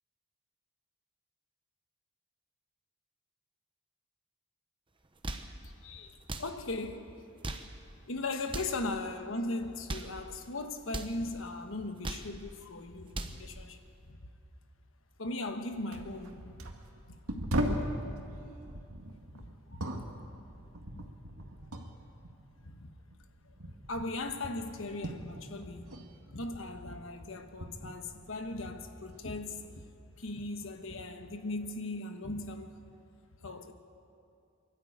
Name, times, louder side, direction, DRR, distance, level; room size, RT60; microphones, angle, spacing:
sound 1, 5.0-5.5 6.2-6.5 7.2-7.7 8.4-8.8 9.7-10.2 10.9-11.2 11.8-12.3 12.9-13.4, right 2 dB, 25° right, 0.9 m, -39 dB
voice 1, 5.6-7.1 8.1-13.8 14.2-14.3 15.2-16.6 17.1-17.2 17.7-18.1 19.3-20.1 20.9-21.0 22.6-22.9 23.5-23.6 23.9-29.8 30.2-32.7 33.4-33.7, left 2 dB, 65° left, 1.3 m, -38 dB
sound 2, 15.5-15.6 15.9-18.0 18.6-22.0 22.2-26.1 26.3-28.7 29.1-29.8 30.6-30.8, equal, 85° right, 1.9 m, -39 dB
24.0 x 12.5 x 8.7 m
head